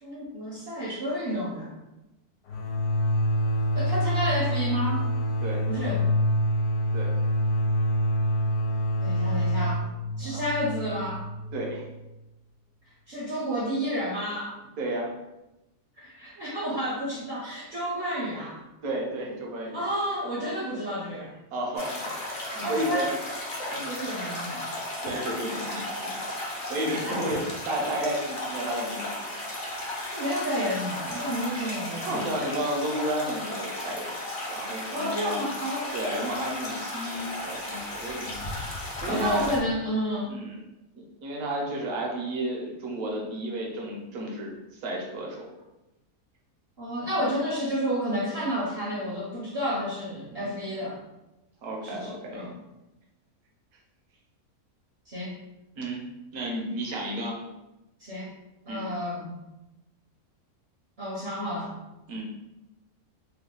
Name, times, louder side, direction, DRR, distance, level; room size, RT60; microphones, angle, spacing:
voice 1, 0.0-1.7 3.7-5.1 5.7-6.1 9.0-9.8 10.2-11.2 13.1-14.5 16.0-18.6 19.7-21.3 22.6-23.1 23.7-24.6 27.0-27.2 30.1-32.3 34.9-36.0 38.9-40.4 46.8-51.0 51.8-52.5 55.1-55.3 58.0-58.3 58.7-59.3 61.0-61.7, equal, 50° right, -6 dB, 0.8 m, -30 dB
sound 1, 2.5-12.0, equal, 85° left, 1.2 m, -26 dB
voice 2, 11.5-11.8 14.8-15.1 18.8-19.8 21.5-22.1 22.5-23.1 23.7-24.0 25.0-26.1 26.7-29.1 32.0-34.2 34.5-35.4 35.9-38.3 39.0-39.6 40.3-40.6 40.9-45.5 50.4-50.6 51.6-52.4 55.8-56.0 56.3-57.4 58.7-58.9 62.1-62.2, right 1 dB, 70° right, -2 dB, 1.2 m, -32 dB
sound 2, 21.8-39.6, left 1 dB, 40° left, 0.8 m, -35 dB
3.2 x 2.3 x 3.7 m, 0.98 s
omnidirectional pair, 1.6 m